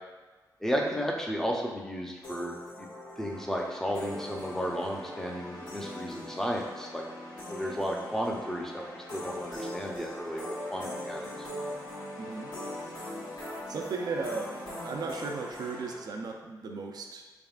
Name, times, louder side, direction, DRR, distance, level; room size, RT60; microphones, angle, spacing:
voice 1, 0.6-2.9 3.2-7.0 7.5-11.3, equal, 5° left, -1 dB, 0.5 m, -33 dB
sound 1, 2.2-16.0, left 1 dB, 75° left, 1.4 m, -41 dB
voice 2, 12.2-12.5 13.7-17.2, right 4 dB, 65° right, 2 dB, 0.4 m, -36 dB
4.1 x 3.5 x 2.3 m, 1.3 s
wide cardioid pair, 115°, 7 cm